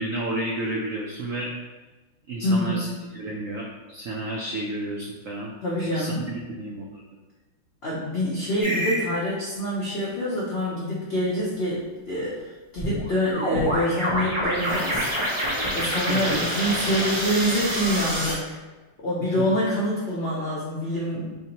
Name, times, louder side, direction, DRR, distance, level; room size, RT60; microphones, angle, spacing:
voice 1, 0.0-1.5 2.3-2.9 3.1-5.5 5.8-7.0 16.1-16.4 19.2-19.3, right 1 dB, 90° right, -2 dB, 0.7 m, -31 dB
voice 2, 2.4-2.8 5.6-6.3 7.8-15.1 15.7-18.6 19.0-21.4, equal, 85° left, -5 dB, 0.5 m, -26 dB
sound 1, 8.6-9.1 12.8-18.3, equal, 40° right, 0.4 m, -27 dB
3.9 x 3.4 x 2.8 m, 1.2 s
omnidirectional pair, 2.0 m